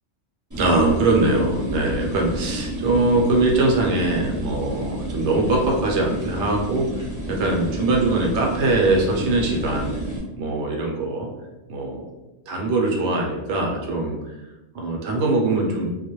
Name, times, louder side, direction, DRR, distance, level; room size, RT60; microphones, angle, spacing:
sound 1, 0.5-10.2, right 1 dB, 20° right, 0.6 m, -30 dB
voice 1, 0.6-6.9 7.3-9.9 10.4-11.3 11.7-12.1 12.5-14.2 14.7-15.9, right 2 dB, 70° right, -1 dB, 0.8 m, -22 dB
2.3 x 2.0 x 2.9 m, 1.0 s
omnidirectional pair, 1.3 m